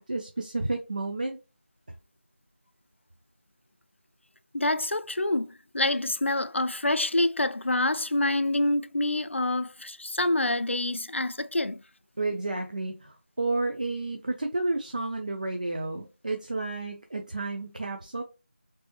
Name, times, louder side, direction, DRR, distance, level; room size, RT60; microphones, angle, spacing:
voice 1, 0.0-1.4 12.2-18.2, right 2 dB, 40° right, 0.5 m, -31 dB
voice 2, 4.5-11.8, left 1 dB, 85° left, 0.4 m, -27 dB
4.2 x 3.3 x 3.0 m
figure-of-eight pair, 170°, 6 cm